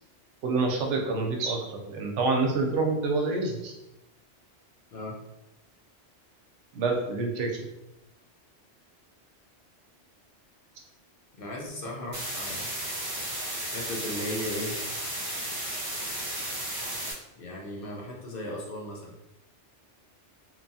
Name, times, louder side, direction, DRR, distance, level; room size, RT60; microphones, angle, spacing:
voice 1, 0.4-3.7 6.7-7.7, right 3 dB, 80° right, 1 dB, 0.9 m, -27 dB
voice 2, 11.3-12.7 13.7-14.8 17.4-19.2, left 1 dB, 60° left, -2 dB, 0.7 m, -36 dB
sound 1, 12.1-17.1, right 1 dB, 40° right, 0.6 m, -34 dB
2.8 x 2.3 x 2.6 m, 0.90 s
omnidirectional pair, 1.2 m